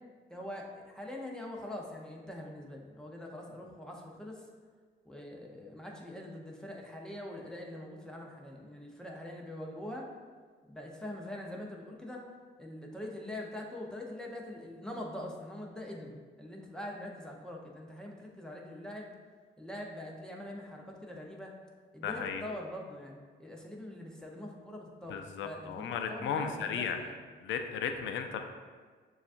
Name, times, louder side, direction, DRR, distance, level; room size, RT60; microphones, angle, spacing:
voice 1, 0.3-4.4 5.1-10.1 10.6-12.2 12.6-19.1 19.6-21.5 21.9-27.2, left 1 dB, 5° left, -1 dB, 0.7 m, -43 dB
voice 2, 22.0-22.4 25.1-27.0 27.4-28.4, left 7 dB, 75° left, 5 dB, 0.5 m, -35 dB
6.8 x 2.4 x 2.5 m, 1.5 s
cardioid pair, 90°, 20 cm